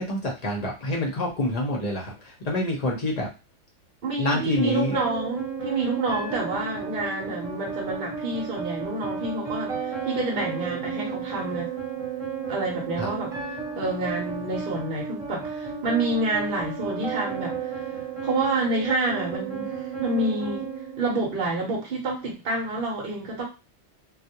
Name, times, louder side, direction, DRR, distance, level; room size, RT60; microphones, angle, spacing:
voice 1, 0.0-3.3 4.2-5.0 13.0-13.1, left 1 dB, 40° left, -1 dB, 0.6 m, -27 dB
voice 2, 4.0-11.7 12.5-13.3 13.7-17.6 18.2-20.7 21.0-23.4, right 2 dB, 55° right, -1 dB, 0.8 m, -28 dB
sound 1, 4.6-21.6, right 5 dB, 35° right, 0.9 m, -33 dB
2.3 x 2.0 x 2.8 m, 0.28 s
omnidirectional pair, 1.2 m